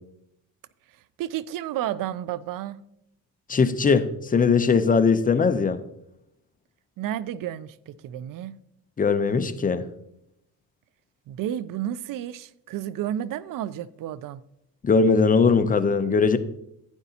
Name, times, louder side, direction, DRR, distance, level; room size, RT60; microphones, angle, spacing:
voice 1, 1.2-2.8 7.0-8.5 11.3-14.4, right 11 dB, 70° right, 0.5 m, -31 dB
voice 2, 3.5-5.8 9.0-9.8 14.8-16.4, left 5 dB, 25° left, 0.6 m, -20 dB
11.5 x 9.1 x 2.8 m
cardioid pair, 105°, 35 cm